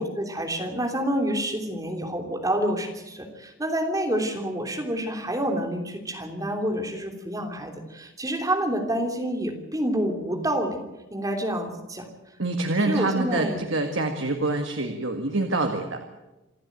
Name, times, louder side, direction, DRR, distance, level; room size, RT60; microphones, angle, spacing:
voice 1, 0.0-10.8 11.1-12.1 12.9-13.6, right 1 dB, 15° right, 3 dB, 3.2 m, -28 dB
voice 2, 12.4-16.1, right 2 dB, 70° right, 4 dB, 1.9 m, -26 dB
27.5 x 12.0 x 9.2 m, 1.0 s
head